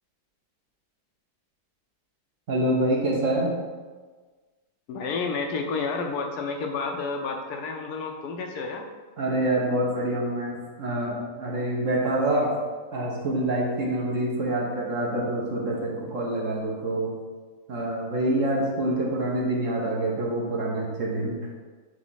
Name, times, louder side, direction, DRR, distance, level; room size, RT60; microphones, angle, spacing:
voice 1, 2.5-3.6 9.2-12.5 12.9-17.1 17.7-21.4, right 1 dB, 50° right, -3 dB, 1.3 m, -26 dB
voice 2, 4.9-8.9, left 4 dB, 70° left, 3 dB, 1.1 m, -30 dB
5.0 x 3.5 x 5.5 m, 1.4 s
omnidirectional pair, 1.8 m